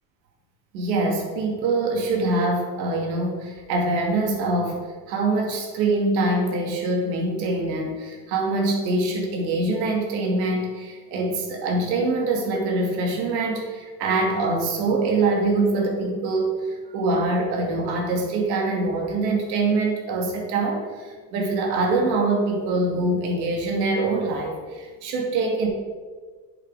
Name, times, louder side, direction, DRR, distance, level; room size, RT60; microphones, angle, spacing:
voice 1, 0.7-25.7, right 2 dB, 85° right, 0 dB, 2.5 m, -24 dB
7.9 x 6.6 x 4.9 m, 1.5 s
cardioid pair, 155°, 49 cm